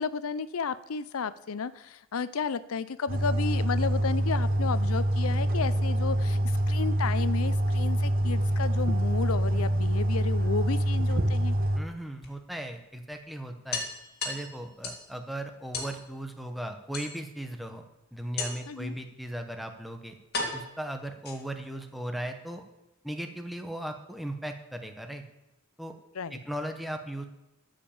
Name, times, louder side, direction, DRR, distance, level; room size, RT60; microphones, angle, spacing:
voice 1, 0.0-11.6 18.7-19.0 26.2-26.4, left 5 dB, 85° left, 15 dB, 0.5 m, -33 dB
sound 1, 3.1-11.8, right 1 dB, 45° right, 0.9 m, -26 dB
sound 2, 9.7-10.7 12.2-12.3 12.7-12.8 13.1-13.2 13.7-15.1 15.7-16.0 16.9-17.5 18.4-18.8 19.6-19.7 20.3-21.7, left 3 dB, 50° left, 2.3 m, -36 dB
voice 2, 11.7-13.8 14.2-17.8 18.1-20.2 20.5-22.6 23.0-25.2 25.8-25.9 26.3-27.3, right 1 dB, ahead, 5 dB, 0.8 m, -37 dB
14.0 x 5.1 x 7.1 m, 0.98 s
head